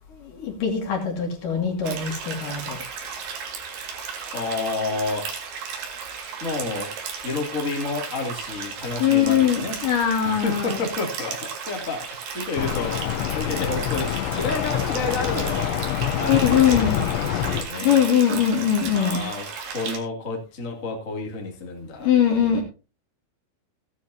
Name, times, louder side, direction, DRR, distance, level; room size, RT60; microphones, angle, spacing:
voice 1, 0.2-2.8 9.0-10.8 16.3-17.0 17.8-19.2 22.0-22.6, left 9 dB, 55° left, 2 dB, 3.5 m, -21 dB
sound 1, 1.8-20.0, right 6 dB, 65° right, 3.9 m, -34 dB
voice 2, 4.3-5.3 6.4-6.9 7.2-9.8 10.2-15.7 16.2-18.0 18.9-22.6, left 3 dB, 25° left, 0 dB, 1.9 m, -30 dB
sound 2, 12.6-17.6, left 11 dB, 85° left, 3.1 m, -26 dB
16.5 x 10.0 x 2.8 m, 0.31 s
omnidirectional pair, 5.2 m